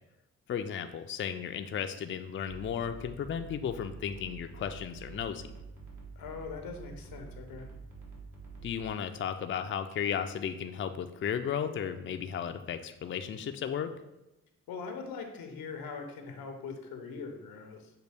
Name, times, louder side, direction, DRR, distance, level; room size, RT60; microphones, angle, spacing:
voice 1, 0.5-5.4 8.6-13.9, left 8 dB, 35° left, 8 dB, 0.4 m, -34 dB
sound 1, 2.4-8.9, right 4 dB, 65° right, 1.3 m, -47 dB
voice 2, 6.2-7.7 14.7-17.9, left 5 dB, 85° left, 5 dB, 0.7 m, -41 dB
6.5 x 2.3 x 3.4 m, 0.93 s
supercardioid pair, 50°, 34 cm